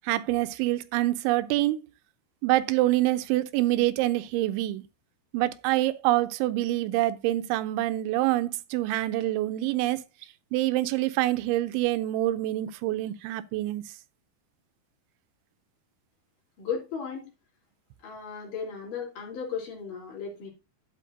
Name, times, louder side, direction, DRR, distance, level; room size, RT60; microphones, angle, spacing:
voice 1, 0.0-1.8 2.4-4.8 5.3-10.0 10.5-13.8, right 16 dB, 85° right, 3.0 m, -26 dB
voice 2, 16.6-17.2 18.0-20.5, left 6 dB, 50° left, 4.8 m, -35 dB
12.0 x 8.4 x 2.6 m
omnidirectional pair, 5.3 m